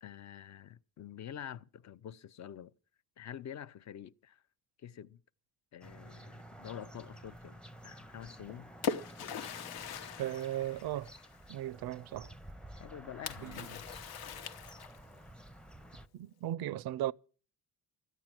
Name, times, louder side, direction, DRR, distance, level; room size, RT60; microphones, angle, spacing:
voice 1, 0.0-2.7 3.2-4.4 4.8-5.2 5.7-8.7 12.8-13.9, left 10 dB, 50° left, 0.6 m, -47 dB
sound 1, 5.8-16.1, right 1 dB, 5° left, 0.6 m, -52 dB
Splash splatter, 8.3-11.5 13.3-15.2, left 7 dB, 90° left, 1.1 m, -41 dB
voice 2, 10.2-11.1 11.5-12.3 13.4-13.6 16.1-17.1, right 13 dB, 80° right, 0.5 m, -36 dB
13.5 x 9.2 x 7.4 m
cardioid pair, 125°, 37 cm